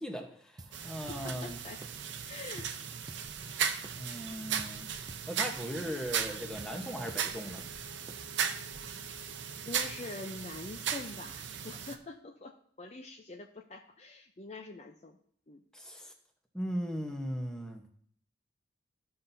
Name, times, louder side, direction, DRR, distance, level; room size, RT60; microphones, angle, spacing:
voice 1, 0.0-1.6 3.9-4.9 5.3-7.6 15.7-16.1 16.5-17.8, equal, 5° left, 3 dB, 1.0 m, -38 dB
sound 1, 0.6-0.8 1.1-1.3 1.6-2.2 2.6-2.8 3.1-3.3 3.6-4.3 4.6-4.8 5.1-5.3 5.6-6.3 6.6-6.8 7.1-7.3 7.6-8.5, right 3 dB, 20° right, 0.4 m, -51 dB
voice 2, 0.7-1.8 2.2-2.8 8.5-8.9 9.6-15.2 15.5-15.6, left 3 dB, 35° left, 4 dB, 0.6 m, -45 dB
sound 2, 0.7-12.0, right 7 dB, 70° right, 0.7 m, -37 dB
Wind instrument woodwind instrument, 6.3-10.9, left 4 dB, 75° left, 1.8 m, -57 dB
15.5 x 5.7 x 2.7 m, 0.62 s
head